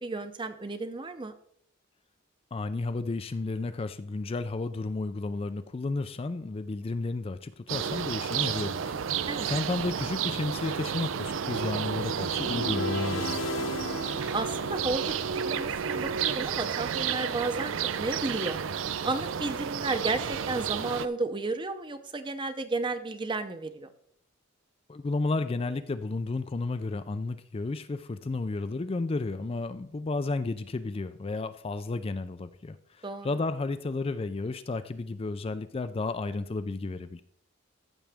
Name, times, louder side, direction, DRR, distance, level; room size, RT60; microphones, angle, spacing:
voice 1, 0.0-1.3 9.3-9.5 14.3-18.6 19.0-23.9 33.0-33.3, right 3 dB, 25° right, 9 dB, 0.7 m, -33 dB
voice 2, 2.5-8.9 9.5-13.5 24.9-37.2, left 3 dB, 30° left, 11 dB, 0.4 m, -32 dB
sound 1, 7.7-21.1, right 7 dB, 75° right, 0.5 m, -31 dB
sound 2, 12.4-15.6, left 2 dB, 75° left, 0.6 m, -35 dB
14.5 x 6.2 x 3.5 m, 0.63 s
head